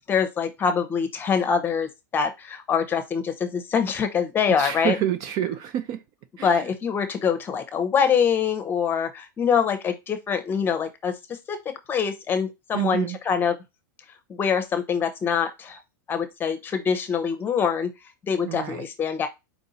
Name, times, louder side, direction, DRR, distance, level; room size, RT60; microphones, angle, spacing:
voice 1, 0.1-5.0 6.4-11.1 11.5-13.6 14.4-15.8 16.1-17.9 18.3-19.3, left 6 dB, 20° left, 0.8 m, -24 dB
voice 2, 4.5-6.0 6.4-6.7 12.7-13.2 18.4-18.8, right 11 dB, 35° right, 0.5 m, -28 dB
4.6 x 2.7 x 4.1 m
supercardioid pair, 145°, 10 cm